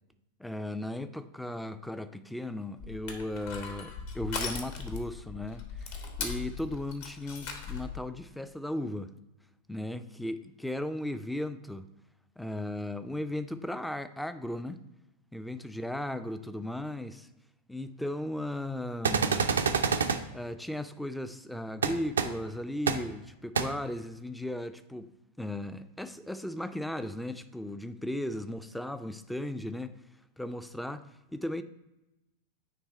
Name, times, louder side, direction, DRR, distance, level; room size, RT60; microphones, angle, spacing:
voice 1, 0.4-9.1 9.7-11.9 12.4-14.8 15.3-17.3 17.7-19.5 20.3-25.1 25.4-29.9 30.4-31.1 31.3-31.6, left 1 dB, ahead, 0.4 m, -36 dB
Crushing, 2.8-8.0, left 5 dB, 50° left, 1.0 m, -39 dB
sound 1, 19.0-20.2 21.8-21.9 22.2-22.3 22.9-23.0 23.5-23.6, right 6 dB, 70° right, 0.4 m, -26 dB
9.2 x 3.3 x 4.2 m
figure-of-eight pair, 90°, 0 cm